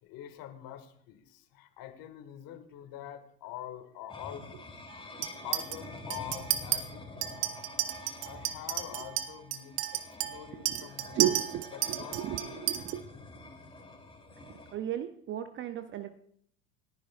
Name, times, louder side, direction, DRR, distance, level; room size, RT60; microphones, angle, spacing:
voice 1, 0.0-4.7 5.4-7.5 8.2-11.4 11.7-12.8, left 11 dB, 45° left, 9 dB, 1.8 m, -45 dB
sound 1, 4.1-14.8, left 2 dB, 10° left, 2.7 m, -47 dB
Chink clink, 5.2-5.8 6.1-6.8 7.2-12.9, right 13 dB, 45° right, 1.2 m, -32 dB
voice 2, 11.1-13.0 14.5-16.2, right 11 dB, 25° right, 12 dB, 0.5 m, -34 dB
28.5 x 10.0 x 2.4 m, 0.65 s
hypercardioid pair, 90°, 49 cm